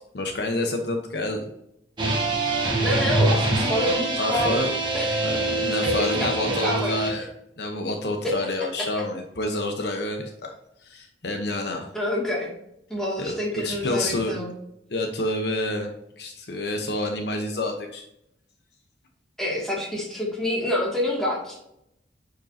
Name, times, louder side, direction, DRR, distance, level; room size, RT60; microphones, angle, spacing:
voice 1, 0.1-1.5 4.2-4.7 5.2-7.3 7.6-10.5 10.8-11.9 13.2-14.3 14.9-18.1, left 2 dB, 60° left, 4 dB, 0.9 m, -28 dB
sound 1, 2.0-7.1, right 2 dB, 25° right, 1.5 m, -24 dB
voice 2, 2.8-4.7 4.9-5.2 5.8-6.9 8.2-8.3 8.8-8.9 11.9-12.5 12.9-14.5 19.4-21.6, left 1 dB, 5° left, -5 dB, 2.2 m, -27 dB
9.2 x 5.1 x 2.7 m, 0.79 s
head